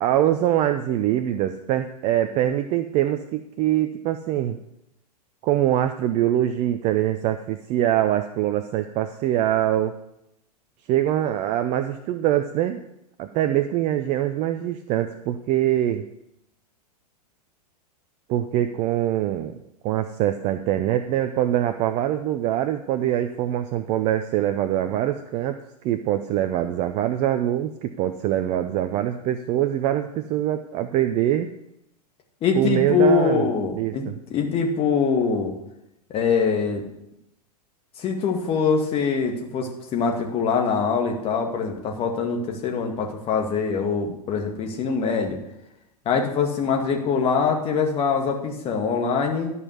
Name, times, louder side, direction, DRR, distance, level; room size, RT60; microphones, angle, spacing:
voice 1, 0.0-4.6 5.4-10.0 10.9-12.8 13.2-16.0 18.3-19.6 19.8-25.6 25.8-31.5 32.5-33.4 33.7-34.2, right 12 dB, 30° right, 8 dB, 0.6 m, -23 dB
voice 2, 32.4-35.5 36.1-36.8 38.0-45.4 46.1-49.5, left 5 dB, 30° left, 2 dB, 2.2 m, -23 dB
12.0 x 5.5 x 8.2 m, 0.82 s
figure-of-eight pair, 100°, 21 cm